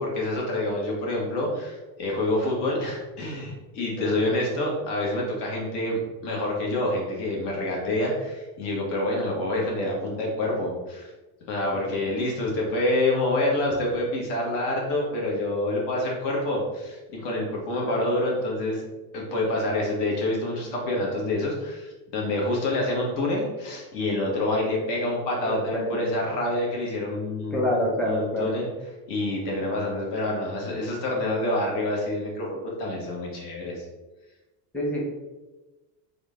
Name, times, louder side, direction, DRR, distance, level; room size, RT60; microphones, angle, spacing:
voice 1, 0.0-11.1 11.5-18.8 19.1-27.8 28.0-28.7 29.1-33.8, left 1 dB, 55° left, -2 dB, 1.5 m, -27 dB
voice 2, 25.5-26.1 27.5-28.5 34.7-35.1, equal, 5° left, -3 dB, 0.8 m, -27 dB
3.7 x 2.5 x 3.5 m, 1.1 s
supercardioid pair, 95°, 49 cm